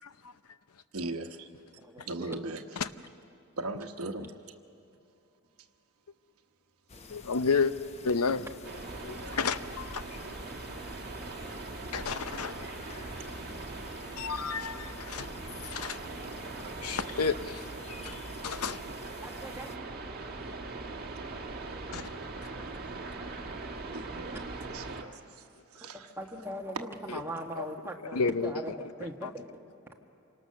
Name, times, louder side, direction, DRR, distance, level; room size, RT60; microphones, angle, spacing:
voice 1, 0.0-0.3 2.0-2.1 2.8-2.9 7.1-7.7 8.0-8.5 9.0-10.0 11.9-12.7 14.2-16.0 16.8-17.7 18.0-18.2 18.4-18.9 21.9-22.1 27.6-27.7 28.0-28.5 29.0-29.3, left 5 dB, 90° left, 0.7 m, -31 dB
voice 2, 0.9-1.5 2.1-2.6 3.6-4.6 21.9-22.1 22.9-23.1 23.9-26.1, right 2 dB, 80° right, 1.1 m, -39 dB
sound 1, 6.9-19.8, left 3 dB, 30° left, 0.8 m, -50 dB
sound 2, 8.6-25.0, right 3 dB, 45° right, 1.7 m, -41 dB
voice 3, 19.2-19.7 26.2-28.7 29.0-29.5, right 1 dB, 10° right, 1.4 m, -40 dB
27.0 x 18.5 x 6.6 m
head